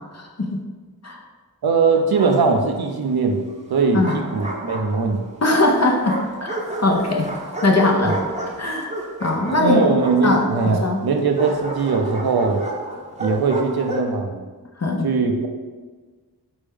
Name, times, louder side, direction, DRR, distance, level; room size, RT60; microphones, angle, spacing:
voice 1, 0.1-0.5 1.0-1.2 3.9-4.2 5.4-6.6 6.8-7.3 7.6-8.2 8.6-8.9 9.2-9.9 10.2-11.0 14.8-15.1, left 2 dB, 45° left, 0 dB, 0.6 m, -20 dB
voice 2, 1.6-3.4 3.7-5.2 8.0-8.2 9.5-12.6 13.2-14.4 15.0-15.5, right 4 dB, 80° right, 5 dB, 0.5 m, -20 dB
Bark, 1.9-2.8 3.7-5.3 6.0-14.2, right 1 dB, 20° right, 0.7 m, -31 dB
4.3 x 3.4 x 3.5 m, 1.4 s
wide cardioid pair, 55°, 37 cm